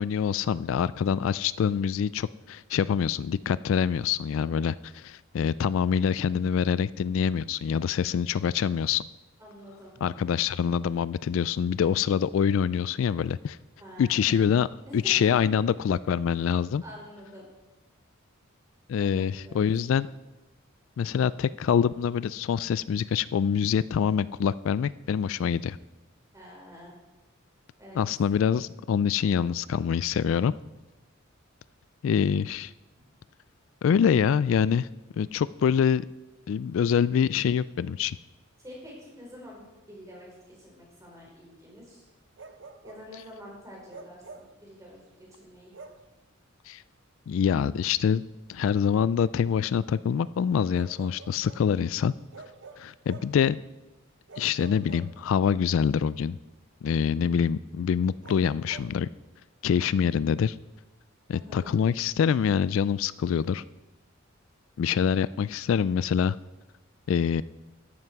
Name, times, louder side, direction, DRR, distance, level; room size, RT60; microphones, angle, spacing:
voice 1, 0.0-9.0 10.0-13.6 14.0-14.7 14.9-16.8 18.9-20.1 21.0-25.8 27.9-30.5 32.0-32.7 33.8-34.9 35.1-36.0 36.5-38.2 46.7-46.8 47.3-48.2 48.5-52.1 52.8-53.6 54.4-56.4 56.8-59.1 59.6-60.6 61.3-63.6 64.8-66.4 67.1-67.4, left 7 dB, 70° left, 18 dB, 0.3 m, -25 dB
voice 2, 9.4-10.3 13.8-14.3 14.9-15.3 16.8-17.5 19.0-20.1 26.3-26.9 27.8-28.0 38.6-42.1 42.8-45.7 61.3-61.7, equal, 15° right, -3 dB, 4.9 m, -47 dB
Bark, 42.4-43.1 43.9-44.6 45.7-46.1 47.8-47.9 50.7-51.7 52.3-53.4 54.3-55.5 58.2-58.9, right 4 dB, 60° right, 0.8 m, -47 dB
13.5 x 11.0 x 4.7 m, 1.1 s
head